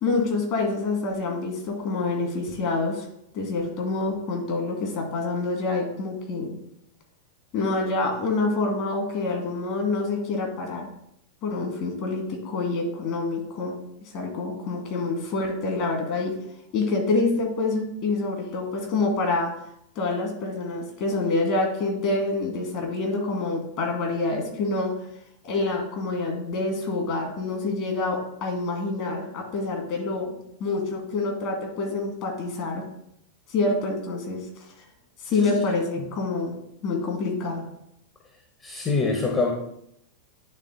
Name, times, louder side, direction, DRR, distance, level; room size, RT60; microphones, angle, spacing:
voice 1, 0.0-3.1 3.3-6.6 7.5-10.9 11.4-13.7 14.1-16.3 16.7-19.5 20.0-24.9 25.4-32.8 33.5-34.4 35.2-36.6 36.8-37.7, left 3 dB, 40° left, 1 dB, 2.0 m, -27 dB
voice 2, 38.6-39.5, left 3 dB, 20° left, 0 dB, 1.0 m, -25 dB
9.9 x 3.7 x 3.9 m, 0.76 s
figure-of-eight pair, 90°, 0 cm